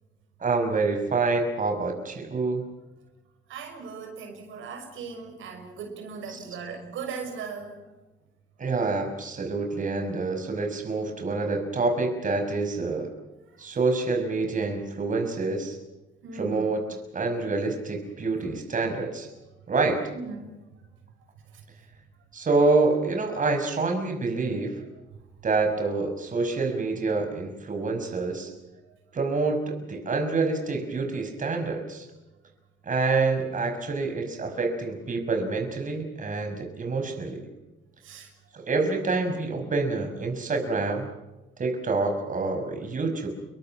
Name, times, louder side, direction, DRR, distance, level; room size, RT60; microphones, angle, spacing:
voice 1, 0.4-2.7 6.3-6.4 8.6-13.1 13.6-15.8 16.3-16.8 17.1-19.3 19.7-20.0 22.3-24.8 25.4-28.5 29.1-32.1 32.9-37.4 38.5-41.1 41.6-43.3, right 3 dB, 40° right, 4 dB, 5.8 m, -27 dB
voice 2, 3.5-7.8 16.2-16.7 20.1-20.5 21.5-21.6 38.0-38.3, right 5 dB, 80° right, 4 dB, 6.3 m, -38 dB
28.5 x 23.5 x 5.9 m, 1.0 s
cardioid pair, 90°, 20 cm